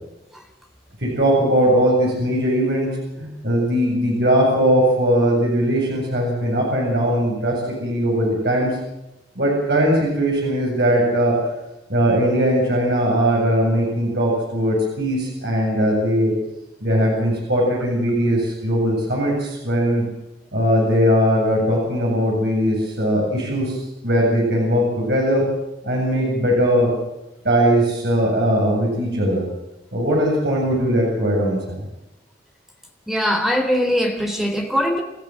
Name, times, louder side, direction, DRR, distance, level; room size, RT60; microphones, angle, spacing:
voice 1, 1.0-8.8 9.4-11.5 11.9-16.4 16.8-20.0 20.5-25.5 25.8-26.9 27.4-29.5 29.9-31.8, equal, 65° right, -2 dB, 7.8 m, -19 dB
voice 2, 33.1-35.0, equal, ahead, 4 dB, 3.8 m, -21 dB
28.5 x 14.5 x 7.8 m, 0.92 s
head